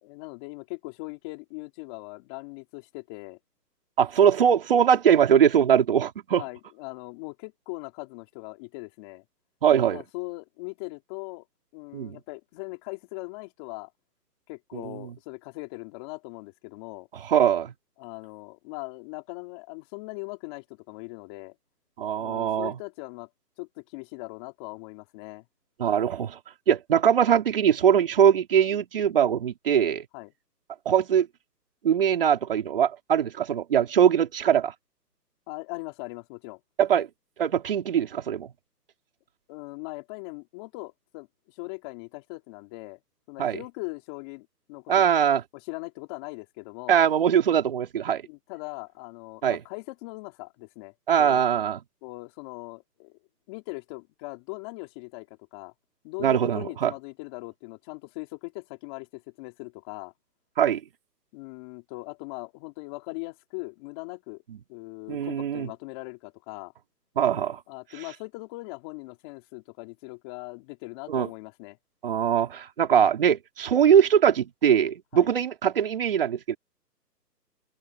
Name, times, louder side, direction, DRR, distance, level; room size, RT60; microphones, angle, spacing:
voice 1, 0.0-3.4 6.4-9.2 9.9-11.5 11.7-13.9 14.5-17.1 18.0-21.6 22.1-23.3 23.6-25.5 30.1-30.3 35.5-36.6 39.5-43.0 43.3-45.1 45.5-47.0 48.2-51.5 52.0-53.2 53.5-55.7 56.0-60.1 61.3-64.4 64.7-66.7 67.7-71.8 75.1-75.3, left 26 dB, 15° left, 3.9 m, -40 dB
voice 2, 4.0-6.4 9.6-10.0 11.9-12.2 14.7-15.0 17.3-17.7 22.0-22.7 25.8-26.4 26.7-30.1 30.9-31.3 31.8-34.7 36.8-37.1 37.4-38.5 43.4-43.6 44.9-45.4 46.9-48.2 49.4-49.6 51.1-51.8 56.2-56.9 60.6-60.8 65.1-65.7 67.2-67.6 71.1-71.3 72.0-76.5, right 8 dB, 35° right, 3.9 m, -22 dB
open air
hypercardioid pair, 170°, 49 cm